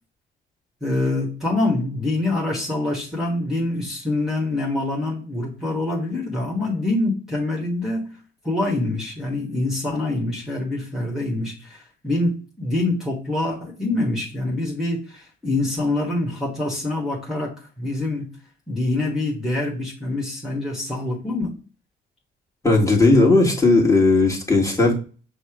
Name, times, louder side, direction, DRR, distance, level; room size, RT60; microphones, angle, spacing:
voice 1, 0.8-8.1 8.4-18.3 18.7-21.5, left 2 dB, ahead, -1 dB, 1.3 m, -25 dB
voice 2, 22.6-24.9, left 2 dB, 15° left, -2 dB, 1.6 m, -16 dB
5.2 x 2.1 x 4.8 m, 0.36 s
cardioid pair, 90°, 20 cm